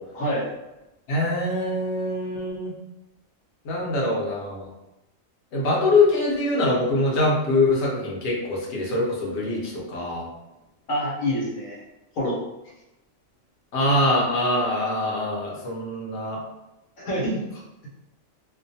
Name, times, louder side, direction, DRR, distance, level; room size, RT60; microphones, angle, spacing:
voice 1, 0.1-0.5 10.9-11.8 12.1-12.4 17.0-17.4, equal, 80° left, -4 dB, 1.3 m, -26 dB
voice 2, 1.1-2.7 3.6-4.7 5.5-10.3 13.7-16.4, left 2 dB, 60° left, -3 dB, 1.0 m, -23 dB
2.6 x 2.3 x 2.6 m, 0.95 s
omnidirectional pair, 1.4 m